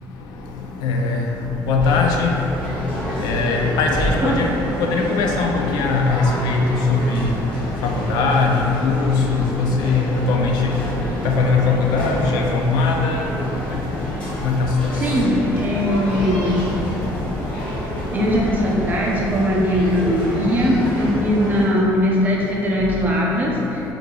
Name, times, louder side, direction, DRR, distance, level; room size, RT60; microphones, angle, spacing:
voice 1, 0.8-1.2 1.7-2.3 3.2-4.5 4.8-6.6 6.9-7.3 7.8-8.5 8.8-9.2 9.6-10.6 11.2-13.2 14.4-14.7, left 4 dB, 85° left, 1 dB, 0.4 m, -20 dB
sound 1, 1.8-21.7, equal, 15° left, 1.2 m, -28 dB
voice 2, 14.9-16.8 18.1-23.8, equal, 25° right, -4 dB, 0.5 m, -20 dB
4.6 x 2.5 x 2.3 m, 2.9 s
cardioid pair, 160°, 7 cm